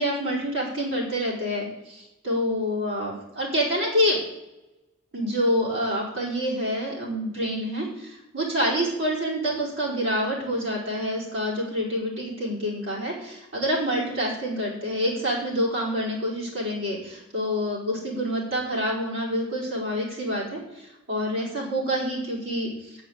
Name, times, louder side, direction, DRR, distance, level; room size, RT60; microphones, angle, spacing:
voice 1, 0.0-4.2 5.1-23.0, equal, 90° right, -4 dB, 5.2 m, -27 dB
8.4 x 7.8 x 9.0 m, 0.95 s
head